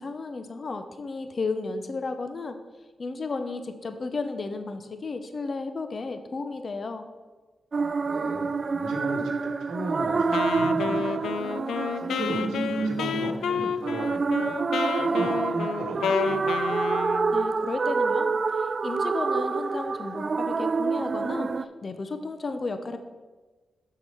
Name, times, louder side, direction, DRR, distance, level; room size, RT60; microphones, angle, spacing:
voice 1, 0.0-2.6 3.0-7.1 17.3-21.5 21.8-23.0, left 3 dB, 50° left, 8 dB, 0.6 m, -33 dB
sound 1, 7.7-21.6, right 4 dB, 55° right, 0.3 m, -27 dB
voice 2, 7.7-11.3 11.9-14.5 15.0-16.8, right 2 dB, 90° right, 3 dB, 1.1 m, -36 dB
Wind instrument woodwind instrument, 10.3-17.5, left 7 dB, 85° left, 0.3 m, -30 dB
6.4 x 4.8 x 5.5 m, 1.3 s
supercardioid pair, 45°, 0 cm